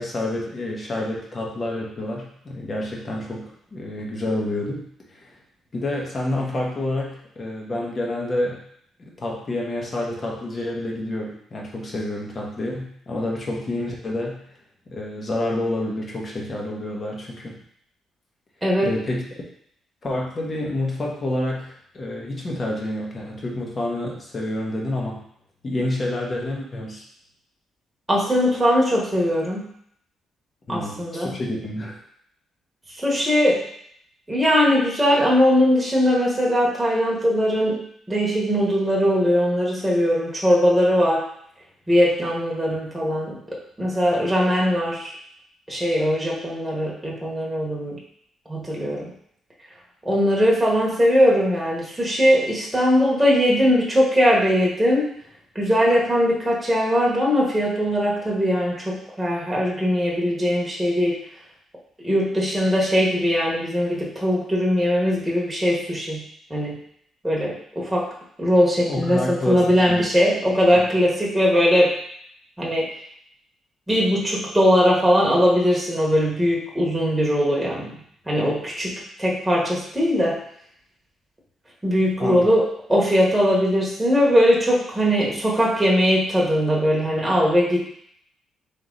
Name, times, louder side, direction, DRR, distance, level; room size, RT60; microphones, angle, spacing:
voice 1, 0.0-3.4 3.7-5.3 5.7-8.6 9.0-14.4 14.9-17.5 18.8-19.2 20.0-25.2 25.6-27.0 30.7-32.0 68.9-70.0 70.7-70.9 82.2-82.6, left 1 dB, 35° left, -2 dB, 1.1 m, -28 dB
voice 2, 18.6-18.9 28.1-29.7 30.7-31.4 33.0-33.6 34.3-37.8 38.1-41.2 41.9-43.4 43.8-45.1 45.7-48.0 48.5-49.1 50.0-55.1 55.5-61.2 62.0-66.2 66.5-66.8 67.2-68.1 68.4-71.9 72.6-72.9 73.9-77.9 78.3-80.4 81.8-82.6 82.9-87.8, equal, 5° right, -4 dB, 1.2 m, -20 dB
3.6 x 3.0 x 3.8 m, 0.68 s
cardioid pair, 90°, 0 cm